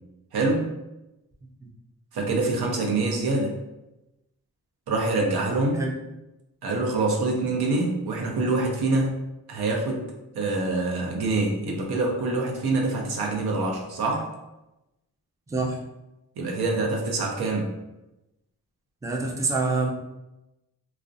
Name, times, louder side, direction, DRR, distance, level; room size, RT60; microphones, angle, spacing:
voice 1, 0.3-0.8 2.1-3.6 4.9-5.9 6.6-9.2 9.5-10.1 10.3-14.3 16.4-17.7, right 2 dB, 85° right, 0 dB, 0.6 m, -25 dB
voice 2, 19.0-19.9, right 3 dB, 10° right, -1 dB, 0.3 m, -26 dB
2.4 x 2.0 x 2.5 m, 0.95 s
cardioid pair, 95°, 37 cm